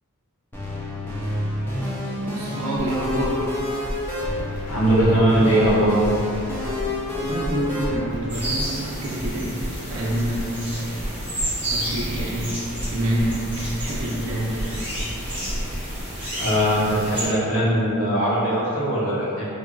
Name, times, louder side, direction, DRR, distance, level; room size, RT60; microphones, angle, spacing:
sound 1, 0.5-7.9, left 1 dB, 10° left, 0.4 m, -28 dB
voice 1, 2.2-3.5 7.1-13.5 13.8-14.7, right 1 dB, 65° right, -6 dB, 0.5 m, -27 dB
sound 2, 2.8-16.0, equal, 35° left, 0.8 m, -34 dB
voice 2, 4.7-6.0 16.3-19.5, right 1 dB, 85° left, -7 dB, 0.8 m, -20 dB
sound 3, 8.3-17.3, right 1 dB, 5° right, 0.8 m, -31 dB
3.9 x 2.3 x 2.2 m, 2.7 s
head